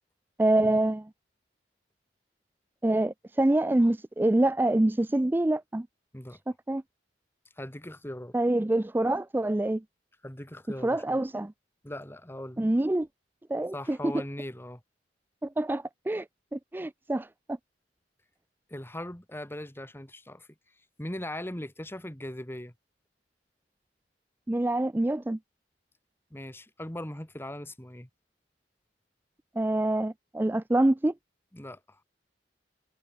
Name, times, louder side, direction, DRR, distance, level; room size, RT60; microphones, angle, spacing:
voice 1, 0.4-1.1 2.8-5.9 6.7-6.8 8.3-9.8 10.8-11.5 12.6-13.1 13.5-14.1 15.4-16.3 16.5-17.6 24.5-25.4 29.6-31.1, right 1 dB, 10° right, 0.4 m, -26 dB
voice 2, 7.6-8.4 10.2-11.2 11.8-12.6 13.7-14.8 18.7-20.5 21.0-22.7 26.3-28.1 31.5-32.0, left 1 dB, 15° left, 1.9 m, -39 dB
head